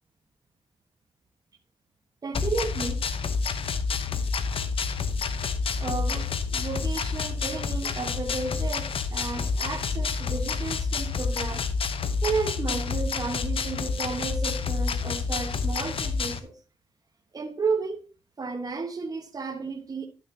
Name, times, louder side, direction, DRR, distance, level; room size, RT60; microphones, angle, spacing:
voice 1, 2.2-3.0 5.8-11.7 12.2-16.6 17.3-18.1 18.4-20.1, right 4 dB, 35° right, 1.3 m, -33 dB
sound 1, 2.3-16.4, left 5 dB, 55° left, 0.8 m, -28 dB
11.0 x 6.6 x 2.8 m
cardioid pair, 85°, 11 cm